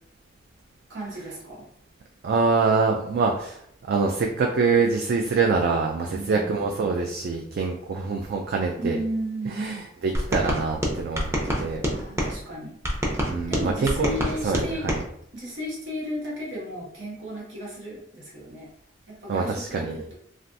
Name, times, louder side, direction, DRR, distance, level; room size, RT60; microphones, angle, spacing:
voice 1, 0.9-1.7 6.1-6.9 8.8-9.7 11.8-12.7 13.5-14.8 15.3-18.7 19.1-20.1, equal, 85° right, -6 dB, 1.2 m, -34 dB
voice 2, 2.2-9.0 9.5-11.8 13.3-14.1 14.4-15.0 19.3-19.9, right 4 dB, 55° right, 1 dB, 0.3 m, -25 dB
sound 1, 10.1-12.3 12.8-15.0, equal, 15° right, 0.6 m, -26 dB
3.3 x 2.4 x 2.6 m, 0.69 s
head